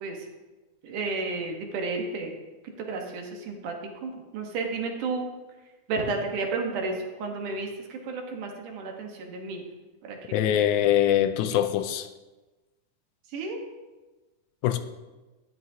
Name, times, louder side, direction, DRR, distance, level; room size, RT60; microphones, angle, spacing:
voice 1, 0.8-2.3 2.8-3.7 4.0-5.3 5.9-9.6 10.0-10.5 11.5-11.6 13.3-13.6, right 3 dB, 85° right, 2 dB, 2.8 m, -32 dB
voice 2, 10.3-12.1 14.6-14.8, left 11 dB, 80° left, 9 dB, 2.0 m, -23 dB
12.5 x 10.5 x 2.7 m, 1.2 s
omnidirectional pair, 3.5 m